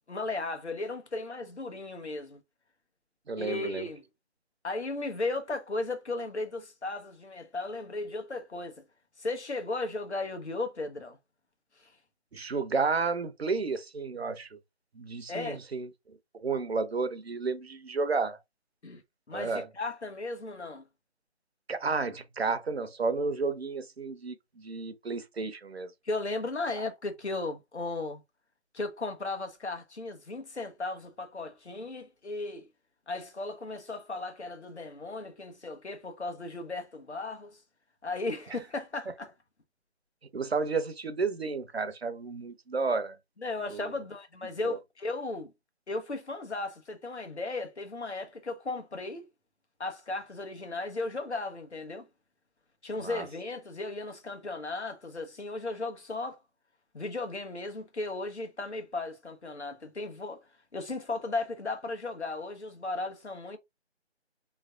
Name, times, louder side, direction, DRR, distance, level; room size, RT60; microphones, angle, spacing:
voice 1, 0.1-2.4 3.4-4.0 4.6-8.8 9.2-11.2 11.8-11.9 15.3-15.6 18.8-19.0 19.3-20.8 26.0-28.2 28.7-32.7 33.1-37.6 38.0-39.3 43.4-45.5 45.9-49.3 49.8-52.1 52.8-56.4 56.9-60.4 60.7-63.6, left 2 dB, 70° left, 1.3 m, -36 dB
voice 2, 3.3-3.9 12.3-14.6 15.0-15.9 16.3-18.4 19.3-19.7 21.7-25.9 40.3-43.2 43.7-43.9 44.6-44.8 53.0-53.3, right 4 dB, 60° right, 0.7 m, -32 dB
3.4 x 3.2 x 2.5 m
figure-of-eight pair, 160°, 35 cm